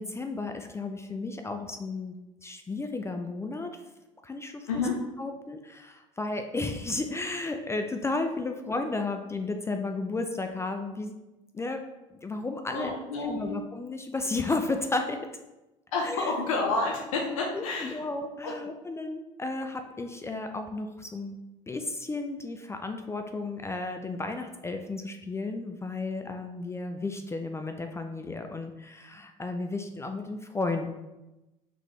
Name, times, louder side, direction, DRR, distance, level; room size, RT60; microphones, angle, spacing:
voice 1, 0.0-3.8 4.2-4.7 5.2-11.1 11.5-11.8 12.2-12.9 13.3-15.2 16.0-16.3 17.5-21.4 21.7-30.9, left 3 dB, 15° left, 5 dB, 0.4 m, -33 dB
voice 2, 12.7-13.6 15.9-18.0 18.4-18.6, left 3 dB, 90° left, -1 dB, 0.6 m, -29 dB
3.9 x 3.3 x 3.1 m, 1.0 s
hypercardioid pair, 80°, 17 cm